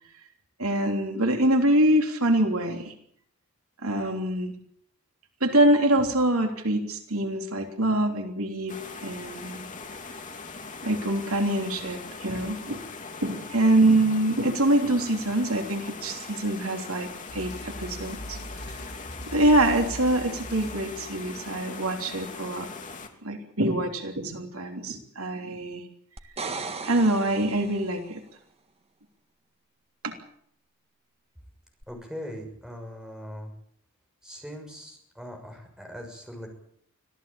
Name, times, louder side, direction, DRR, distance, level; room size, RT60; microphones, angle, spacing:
voice 1, 0.6-2.9 3.8-4.5 5.4-9.7 10.8-12.8 13.2-18.8 19.3-22.7 23.2-25.8 26.4-26.5 26.8-28.2 30.0-30.1, right 1 dB, 70° right, 4 dB, 3.4 m, -25 dB
sound 1, 8.7-23.1, left 4 dB, 35° left, 3.0 m, -41 dB
sound 2, 17.3-21.6, equal, 80° left, 4.8 m, -41 dB
sound 3, 26.2-28.1 31.8-31.9, right 4 dB, 25° right, 1.7 m, -37 dB
voice 2, 31.9-33.5 34.2-36.5, equal, 5° right, 2 dB, 6.5 m, -40 dB
25.5 x 16.5 x 8.7 m, 0.67 s
head